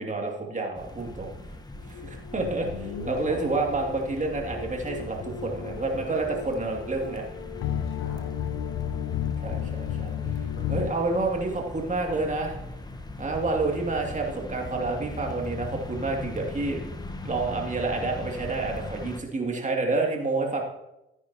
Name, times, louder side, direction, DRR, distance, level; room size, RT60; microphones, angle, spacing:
voice 1, 0.0-1.3 1.9-2.7 3.1-7.2 9.4-10.2 10.7-12.6 13.2-16.8 17.2-20.6, right 3 dB, 25° right, 0 dB, 2.4 m, -29 dB
sound 1, 0.8-19.2, left 2 dB, 15° left, 1.1 m, -40 dB
sound 2, 1.9-10.9, left 10 dB, 55° left, 0.8 m, -34 dB
voice 2, 2.3-3.6 7.8-8.5 10.1-11.0, left 3 dB, 85° left, -2 dB, 2.3 m, -40 dB
14.5 x 9.5 x 2.8 m, 0.92 s
hypercardioid pair, 55°, 30 cm